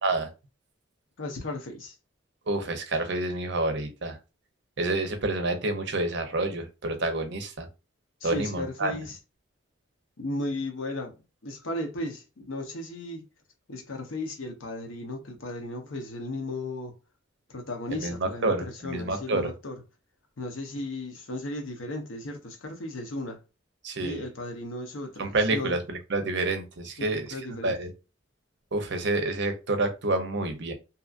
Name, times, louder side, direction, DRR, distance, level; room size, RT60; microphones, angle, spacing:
voice 1, 1.2-2.0 8.2-9.2 10.2-13.2 13.7-16.9 17.5-19.8 20.4-23.4 24.0-25.8 27.1-27.8, left 2 dB, 80° left, 0.8 m, -35 dB
voice 2, 2.5-4.2 4.8-7.7 8.2-9.0 18.0-19.5 23.8-24.2 25.2-27.4 27.6-27.9 28.7-30.7, right 2 dB, 60° right, 0.7 m, -28 dB
2.8 x 2.4 x 2.4 m
head